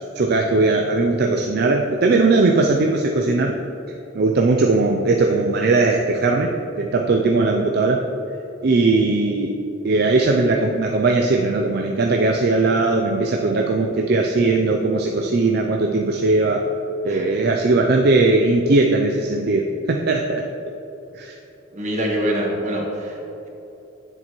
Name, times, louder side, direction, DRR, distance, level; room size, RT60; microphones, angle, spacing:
voice 1, 0.2-3.6 4.1-8.0 8.6-9.5 9.8-16.7 17.0-20.5 21.1-21.4, right 3 dB, 60° right, 2 dB, 0.5 m, -19 dB
voice 2, 17.1-17.4 21.7-23.2, equal, 40° right, -1 dB, 1.5 m, -25 dB
9.8 x 7.5 x 3.1 m, 3.0 s
head